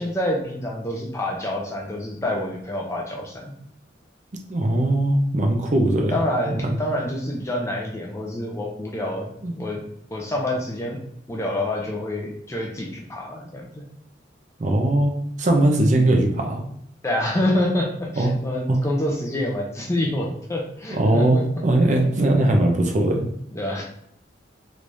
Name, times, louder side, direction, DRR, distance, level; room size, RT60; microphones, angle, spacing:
voice 1, 0.0-3.5 6.1-9.8 10.1-11.0 11.3-13.9 17.0-21.4 23.5-23.8, left 1 dB, 15° left, -1 dB, 0.5 m, -27 dB
voice 2, 4.5-6.2 6.5-6.8 9.4-9.5 14.6-16.6 18.2-18.3 18.7-18.8 20.9-23.3, right 1 dB, 40° right, 2 dB, 0.5 m, -20 dB
3.3 x 3.1 x 2.6 m, 0.73 s
head